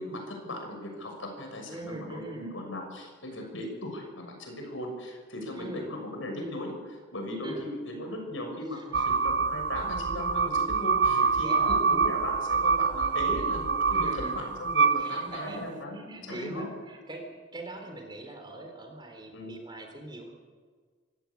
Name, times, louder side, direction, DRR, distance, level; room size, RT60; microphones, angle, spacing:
voice 1, 0.0-16.7 19.3-19.5, left 1 dB, 80° left, 3 dB, 6.6 m, -37 dB
voice 2, 1.7-2.5 5.5-5.9 7.4-7.7 8.7-9.2 11.0-11.8 13.9-14.5 15.0-15.7 15.9-20.3, right 2 dB, 25° right, 3 dB, 3.6 m, -42 dB
sound 1, 8.9-15.7, right 5 dB, 60° right, 0.7 m, -26 dB
25.0 x 15.0 x 8.6 m, 1.6 s
head